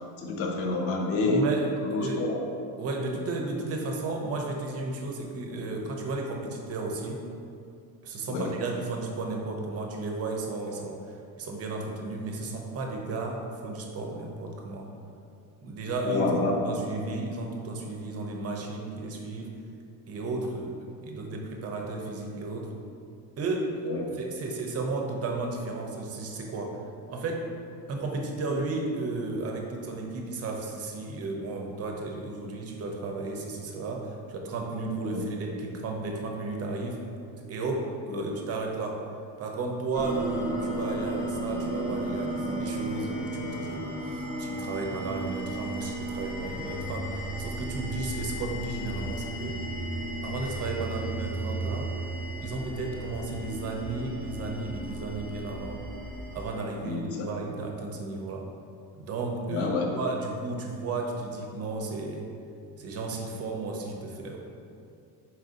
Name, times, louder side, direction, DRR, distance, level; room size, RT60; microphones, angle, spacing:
voice 1, 0.2-1.5 1.8-2.4 8.3-8.5 16.0-16.6 23.8-24.0 35.1-35.2 38.1-38.3 56.8-57.2 59.5-59.9, left 3 dB, 35° left, 1 dB, 0.4 m, -28 dB
voice 2, 1.2-2.3 2.8-7.2 8.0-14.9 15.6-16.3 16.6-19.6 20.1-22.7 23.4-26.8 27.1-27.5 27.9-37.1 37.3-39.0 39.4-49.6 50.2-51.9 52.4-55.9 56.3-58.5 58.9-62.3 62.8-64.4, right 3 dB, 35° right, 1 dB, 0.5 m, -34 dB
sound 1, 39.9-56.5, right 1 dB, 55° left, 1.0 m, -34 dB
4.2 x 2.6 x 3.6 m, 2.4 s
cardioid pair, 155°, 41 cm